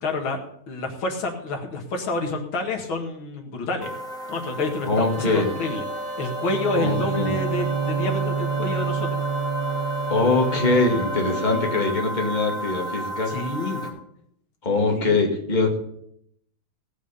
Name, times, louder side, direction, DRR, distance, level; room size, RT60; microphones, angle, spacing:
voice 1, 0.0-3.9 4.3-5.8 6.2-9.1 13.3-13.8 14.9-15.2, left 2 dB, 80° left, 3 dB, 2.6 m, -28 dB
sound 1, 3.8-13.9, right 1 dB, ahead, 2.2 m, -33 dB
voice 2, 4.8-5.5 6.7-7.4 10.1-13.3 13.8-14.0 14.6-15.8, left 3 dB, 20° left, 1 dB, 2.2 m, -22 dB
Trumpet, 5.0-11.9, right 1 dB, 45° right, 5.0 m, -34 dB
Bowed string instrument, 6.4-11.2, right 7 dB, 70° right, 2.7 m, -29 dB
18.0 x 6.3 x 6.9 m, 0.70 s
omnidirectional pair, 2.2 m